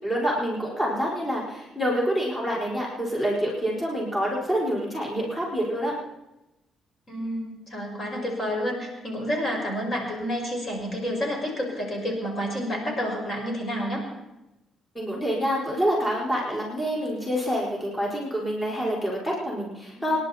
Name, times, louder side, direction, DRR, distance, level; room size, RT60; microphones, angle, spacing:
voice 1, 0.0-5.9 14.9-20.2, equal, 20° left, -3 dB, 4.8 m, -27 dB
voice 2, 7.1-14.1 20.0-20.1, equal, 40° left, 0 dB, 5.7 m, -29 dB
27.5 x 11.0 x 4.3 m, 0.98 s
cardioid pair, 90°, 0 cm